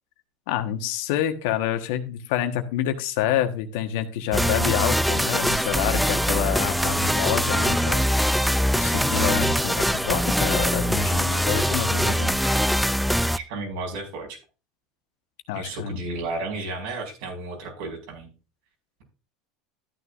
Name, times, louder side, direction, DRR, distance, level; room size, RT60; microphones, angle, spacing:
voice 1, 0.5-8.0 8.7-12.3 15.5-16.0, left 10 dB, 70° left, 8 dB, 1.3 m, -27 dB
sound 1, 4.3-13.4, equal, ahead, 0.4 m, -23 dB
voice 2, 13.3-14.4 15.5-18.3, right 2 dB, 75° right, 1 dB, 5.0 m, -33 dB
13.0 x 9.7 x 2.5 m, 0.32 s
hypercardioid pair, 90°, 0 cm